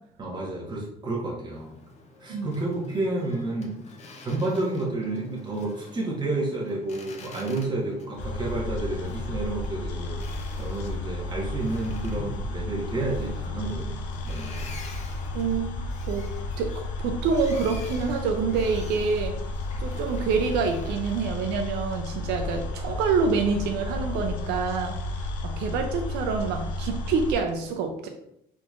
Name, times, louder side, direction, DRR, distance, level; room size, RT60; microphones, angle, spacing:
voice 1, 0.2-1.7 2.2-3.7 4.2-10.2 10.6-14.7, right 2 dB, 25° right, -3 dB, 1.1 m, -30 dB
Boat Water vehicle, 1.5-21.3, left 3 dB, 40° left, 0.6 m, -46 dB
sound 1, 8.2-27.3, left 2 dB, 90° left, 0.5 m, -33 dB
voice 2, 15.3-15.7 16.1-16.3 16.6-16.7 17.0-19.4 19.8-28.1, right 5 dB, 80° right, 4 dB, 0.4 m, -27 dB
3.7 x 3.0 x 2.4 m, 0.77 s
cardioid pair, 110°, 17 cm